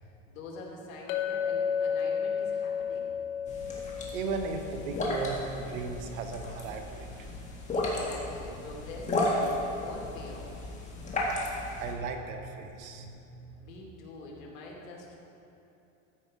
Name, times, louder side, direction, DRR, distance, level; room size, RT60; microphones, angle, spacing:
voice 1, 0.0-3.1 7.7-10.6 13.6-15.2, left 2 dB, 80° left, -2 dB, 2.3 m, -45 dB
Chink clink, 1.1-5.5, left 7 dB, 55° left, 1.1 m, -32 dB
sound 1, 3.5-11.9, left 1 dB, 20° left, 1.5 m, -34 dB
voice 2, 4.1-7.5 11.7-13.2, right 4 dB, 80° right, 5 dB, 1.2 m, -36 dB
13.5 x 5.3 x 4.8 m, 2.8 s
supercardioid pair, 145°, 40 cm